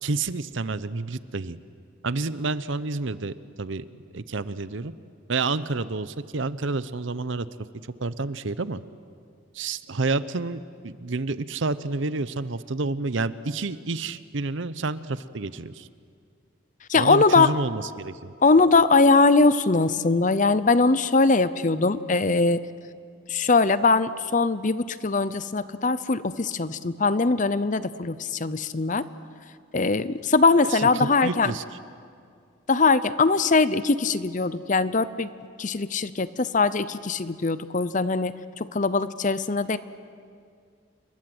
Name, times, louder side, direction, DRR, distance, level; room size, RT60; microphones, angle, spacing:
voice 1, 0.0-1.6 2.0-3.9 4.1-4.9 5.3-7.5 8.0-8.8 9.5-15.9 17.0-18.3 30.7-31.6, right 3 dB, 65° right, 15 dB, 0.8 m, -29 dB
voice 2, 16.9-17.5 18.4-22.6 23.3-29.0 29.7-31.6 32.7-35.3 35.6-39.8, left 3 dB, 35° left, 15 dB, 0.7 m, -21 dB
28.5 x 22.5 x 7.9 m, 2.2 s
head